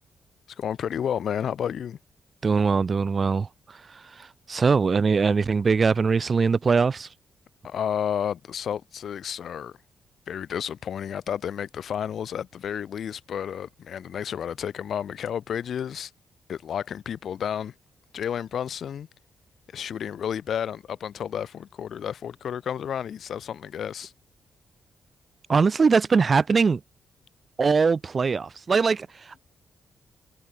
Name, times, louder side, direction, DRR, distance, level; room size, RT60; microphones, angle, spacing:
voice 1, 0.6-2.0 7.6-9.8 10.3-16.1 16.5-17.7 18.1-19.1 19.7-24.1, left 8 dB, 60° left, 7.1 m, -31 dB
voice 2, 2.4-3.5 4.5-7.1 25.5-26.8 27.6-29.1, right 5 dB, 30° right, 1.7 m, -21 dB
wide cardioid pair, 165°, 0 cm